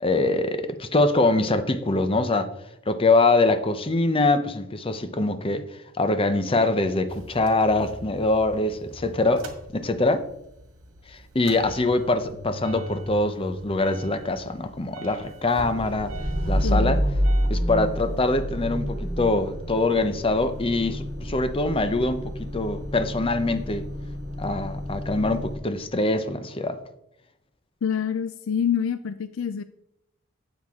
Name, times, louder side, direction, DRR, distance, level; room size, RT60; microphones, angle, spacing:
voice 1, 0.0-2.5 2.9-5.6 6.0-10.2 11.1-16.1 16.5-17.0 17.5-23.8 24.4-26.8, left 2 dB, 25° left, 10 dB, 0.7 m, -24 dB
Motor vehicle (road) / Engine starting / Idling, 7.1-10.3 10.6-25.6, equal, 80° right, 1.8 m, -30 dB
voice 2, 16.6-16.9 27.8-29.6, left 7 dB, 70° left, 12 dB, 0.4 m, -26 dB
12.0 x 7.9 x 3.6 m, 0.83 s
head